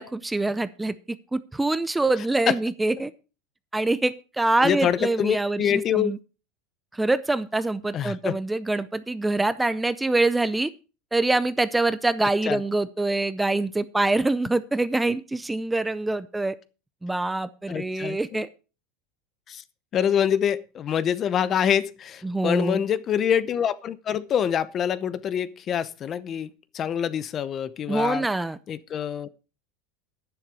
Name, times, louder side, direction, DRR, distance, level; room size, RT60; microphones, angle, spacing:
voice 1, 0.0-3.1 3.7-6.2 6.9-10.7 11.1-16.6 17.0-18.5 22.2-22.8 27.9-28.6, right 2 dB, 5° right, 0.5 m, -25 dB
voice 2, 4.6-6.1 7.9-8.4 12.5-12.6 17.7-18.4 19.5-19.6 19.9-28.3 28.7-29.3, left 9 dB, 30° left, 0.7 m, -25 dB
11.0 x 10.5 x 4.7 m
supercardioid pair, 145°, 0 cm